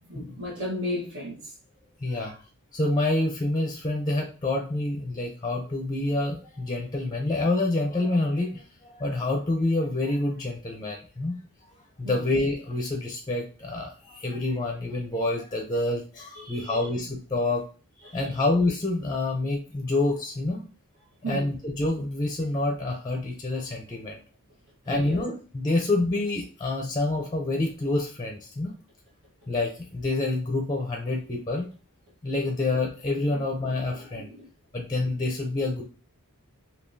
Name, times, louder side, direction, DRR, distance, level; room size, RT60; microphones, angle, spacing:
voice 1, 0.1-1.5 2.1-2.3 12.0-12.3 16.3-16.9 18.0-18.2 21.2-21.5 24.9-25.2 33.3-33.4 33.9-34.5, left 1 dB, 80° right, -8 dB, 1.3 m, -35 dB
voice 2, 2.0-2.3 2.7-11.4 12.0-17.6 18.1-20.7 21.3-24.2 24.9-28.7 29.5-31.7 32.2-34.3 34.7-35.8, left 2 dB, 20° left, 1 dB, 0.5 m, -27 dB
3.6 x 2.7 x 2.6 m, 0.37 s
head